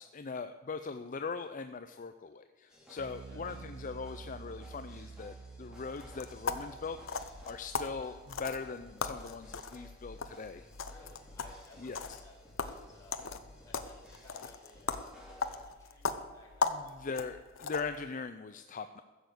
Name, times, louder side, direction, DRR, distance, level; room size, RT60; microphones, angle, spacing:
voice 1, 0.0-10.7 11.8-12.2 16.7-19.0, left 4 dB, 40° left, 9 dB, 0.5 m, -41 dB
sound 1, 2.7-15.6, left 1 dB, 5° right, 3.2 m, -57 dB
Bass guitar, 3.0-9.4, right 4 dB, 65° right, 0.5 m, -50 dB
voice 2, 3.2-3.6 10.9-13.2 13.6-17.2, left 2 dB, 15° left, -4 dB, 4.8 m, -59 dB
sound 2, 6.0-18.1, left 4 dB, 85° left, 0.9 m, -39 dB
15.0 x 7.0 x 7.9 m, 1.4 s
head